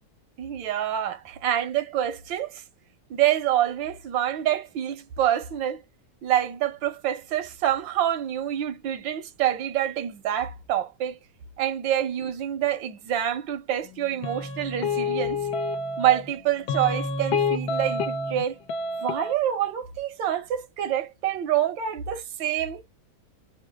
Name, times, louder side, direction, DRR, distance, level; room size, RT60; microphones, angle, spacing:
voice 1, 0.4-2.6 3.1-5.8 6.2-11.2 11.6-15.4 16.0-18.6 19.0-22.9, right 11 dB, 90° right, 1.6 m, -26 dB
sound 1, 14.2-16.3 16.7-18.4 18.7-19.3, left 3 dB, 65° left, 1.3 m, -28 dB
3.7 x 2.2 x 4.4 m
omnidirectional pair, 2.0 m